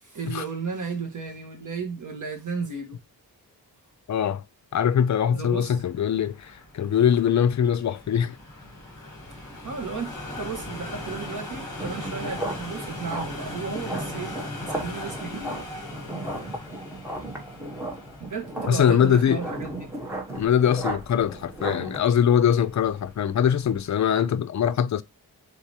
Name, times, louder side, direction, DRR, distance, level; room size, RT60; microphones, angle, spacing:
voice 1, 0.0-3.0 5.3-5.8 9.6-14.3 14.6-15.6 18.2-19.7, right 5 dB, 55° right, 1.3 m, -34 dB
voice 2, 4.1-4.4 4.7-8.4 18.7-19.4 20.4-25.0, left 8 dB, 50° left, 0.4 m, -22 dB
sound 1, 5.8-24.0, left 2 dB, 10° left, 2.3 m, -40 dB
sound 2, 11.8-22.0, right 1 dB, 5° right, 1.1 m, -35 dB
4.7 x 3.9 x 2.8 m
wide cardioid pair, 150°, 38 cm